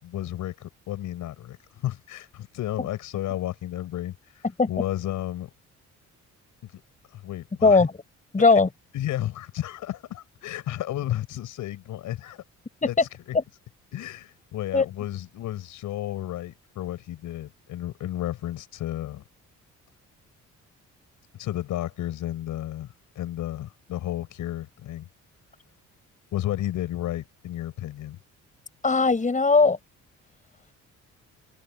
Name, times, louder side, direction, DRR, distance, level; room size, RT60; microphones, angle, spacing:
voice 1, 0.0-5.5 6.6-6.8 7.1-7.9 8.9-12.4 12.9-13.1 13.9-19.2 21.3-22.9 23.1-25.1 26.3-28.2, left 13 dB, 85° left, 6.4 m, -32 dB
voice 2, 7.6-7.9 8.3-8.7 12.8-12.9 13.3-13.4 14.7-14.9 28.8-29.8, left 4 dB, 25° left, 5.2 m, -18 dB
cardioid pair, 90°, 30 cm